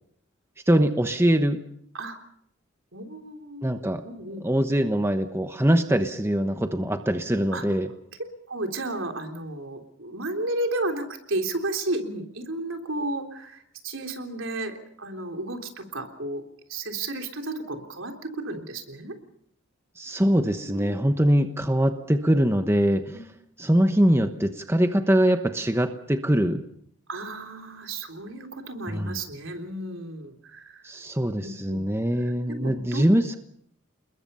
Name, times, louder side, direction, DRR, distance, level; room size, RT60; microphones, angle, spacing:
voice 1, 0.7-1.6 3.6-4.0 4.4-7.9 20.0-23.2 23.6-26.6 28.9-29.2 30.8-33.4, equal, 10° right, 7 dB, 1.1 m, -23 dB
voice 2, 2.9-4.4 7.5-7.6 8.5-16.4 16.7-19.1 20.6-21.2 27.1-30.8 31.4-31.8 32.2-33.0, right 2 dB, 75° right, 4 dB, 3.5 m, -33 dB
29.0 x 21.5 x 5.6 m, 0.70 s
head